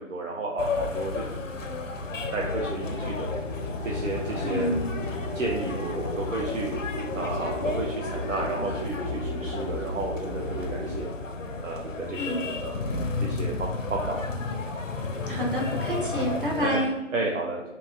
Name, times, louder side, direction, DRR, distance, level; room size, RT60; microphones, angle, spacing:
voice 1, 0.0-1.4 2.3-3.3 3.8-4.7 5.0-6.7 7.1-11.1 11.6-14.3 16.6-17.6, right 2 dB, 85° right, -1 dB, 0.6 m, -32 dB
sound 1, 0.6-16.7, left 3 dB, 90° left, 0.5 m, -32 dB
sound 2, 2.3-11.0, left 1 dB, 5° right, 0.8 m, -35 dB
voice 2, 4.4-4.8 12.2-12.4 15.3-16.9, equal, 45° right, -1 dB, 0.7 m, -28 dB
3.0 x 2.7 x 2.3 m, 1.1 s
figure-of-eight pair, 150°, 38 cm